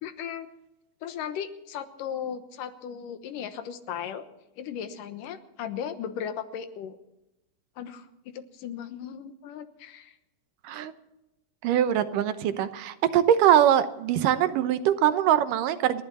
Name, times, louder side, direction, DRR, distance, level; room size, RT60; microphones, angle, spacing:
voice 1, 0.0-0.5 1.0-4.3 4.6-7.0 7.8-8.1 8.3-10.1, left 8 dB, 85° left, 9 dB, 2.8 m, -36 dB
voice 2, 11.6-16.0, right 11 dB, 80° right, 11 dB, 2.5 m, -22 dB
30.0 x 11.0 x 4.3 m, 0.93 s
omnidirectional pair, 3.7 m